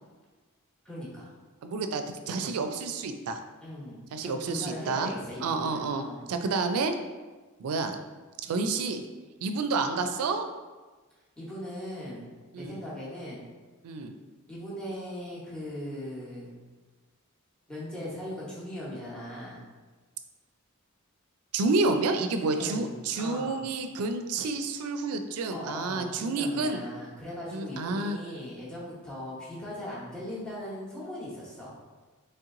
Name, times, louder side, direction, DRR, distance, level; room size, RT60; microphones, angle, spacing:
voice 1, 0.8-1.3 3.6-6.3 11.4-13.4 14.5-16.5 17.7-19.6 22.4-22.9 23.2-23.6 25.5-31.7, left 1 dB, 5° left, -7 dB, 0.9 m, -39 dB
voice 2, 1.6-3.4 4.1-5.1 5.4-6.9 7.6-8.0 8.4-9.0 9.4-10.5 12.5-12.8 13.8-14.1 21.5-26.9 27.5-28.2, right 3 dB, 85° right, 7 dB, 0.4 m, -29 dB
3.2 x 2.9 x 3.6 m, 1.3 s
head